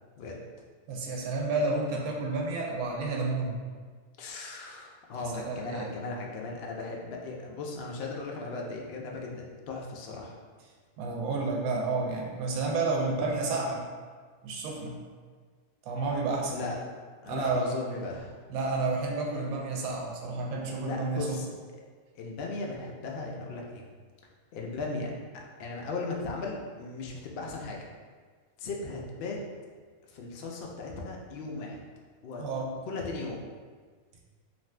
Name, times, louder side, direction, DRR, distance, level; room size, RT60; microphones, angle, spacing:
voice 1, 0.9-3.6 5.2-5.9 11.0-13.8 14.4-15.0 15.9-16.6 17.3-17.7 18.5-21.4 32.4-32.7, right 3 dB, 80° right, 0 dB, 1.0 m, -30 dB
voice 2, 4.2-10.4 13.1-13.2 16.5-16.8 17.2-18.4 20.7-21.5 22.1-23.9 24.5-27.9 28.6-29.4 30.1-31.8 32.2-32.4 32.8-33.4, left 3 dB, 75° left, -1 dB, 0.5 m, -37 dB
2.5 x 2.5 x 3.2 m, 1.5 s
omnidirectional pair, 1.5 m